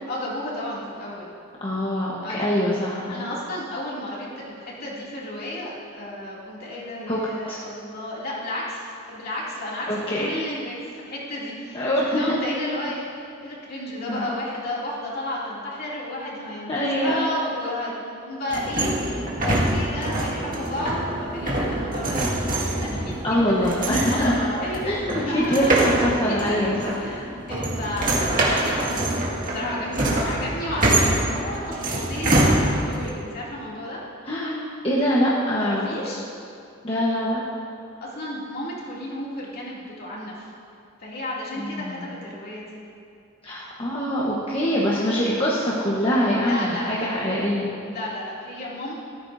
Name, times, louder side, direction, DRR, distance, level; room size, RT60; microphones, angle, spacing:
voice 1, 0.1-1.3 2.2-2.6 2.9-9.9 10.2-13.0 13.4-22.3 22.8-26.0 26.3-26.6 27.0-29.0 29.4-34.0 35.6-36.2 38.0-40.5 41.0-42.8 46.4-47.1 47.8-48.9, left 1 dB, 50° left, -6 dB, 2.6 m, -32 dB
voice 2, 1.6-3.3 7.1-7.2 7.5-7.6 9.9-10.3 11.7-12.2 14.1-14.3 16.7-17.2 23.2-24.3 24.8-27.0 34.2-35.9 36.8-37.4 41.6-42.0 43.4-47.7, equal, 25° left, -6 dB, 1.2 m, -24 dB
sound 1, 18.5-33.1, right 1 dB, 45° right, 1.9 m, -25 dB
14.5 x 13.0 x 2.7 m, 2.5 s
head